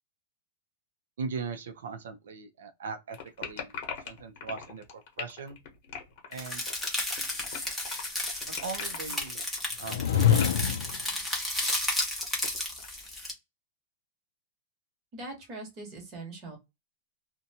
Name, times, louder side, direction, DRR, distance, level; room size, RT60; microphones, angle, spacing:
voice 1, 1.2-3.7 4.0-5.6 6.3-6.7 8.5-9.4 9.8-10.7, right 4 dB, 90° right, 0.5 m, -39 dB
sound 1, 3.1-13.1, left 7 dB, 35° left, 0.9 m, -41 dB
sound 2, 6.4-13.3, left 1 dB, ahead, 0.6 m, -33 dB
sound 3, 9.8-11.0, left 9 dB, 70° left, 0.3 m, -24 dB
voice 2, 15.1-16.6, right 2 dB, 25° right, 1.0 m, -41 dB
2.7 x 2.1 x 2.7 m
supercardioid pair, 175°, 0 cm